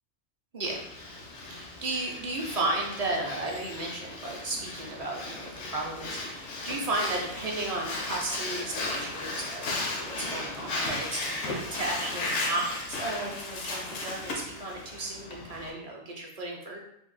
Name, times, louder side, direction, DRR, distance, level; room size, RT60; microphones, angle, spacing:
Breathing, 0.6-15.7, left 2 dB, 85° left, 1.0 m, -36 dB
voice 1, 1.5-16.8, right 2 dB, 45° right, -1 dB, 0.6 m, -34 dB
2.7 x 2.5 x 3.8 m, 0.76 s
omnidirectional pair, 1.2 m